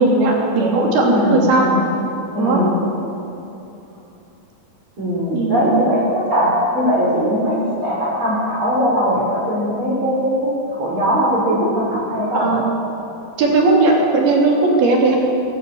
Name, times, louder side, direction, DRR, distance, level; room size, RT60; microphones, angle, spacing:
voice 1, 0.0-1.7 2.4-2.6 5.3-5.9 12.3-12.6 13.4-15.2, right 3 dB, 80° right, -1 dB, 5.3 m, -17 dB
voice 2, 1.0-1.8 2.3-2.8 5.0-12.5, equal, 35° right, -6 dB, 5.6 m, -20 dB
22.5 x 17.5 x 7.3 m, 2.9 s
omnidirectional pair, 4.4 m